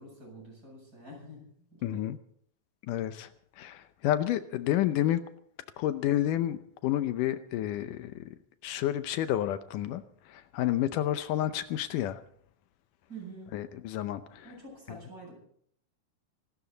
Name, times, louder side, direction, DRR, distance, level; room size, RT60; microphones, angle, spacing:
voice 1, 0.0-2.0 13.1-13.5 14.4-15.3, right 2 dB, 25° right, -1 dB, 8.5 m, -47 dB
voice 2, 1.8-2.2 2.9-3.3 3.6-5.2 5.8-8.4 8.6-10.0 10.3-12.2 13.5-14.5, left 12 dB, 80° left, 11 dB, 2.4 m, -30 dB
25.0 x 13.0 x 4.0 m, 0.65 s
omnidirectional pair, 3.7 m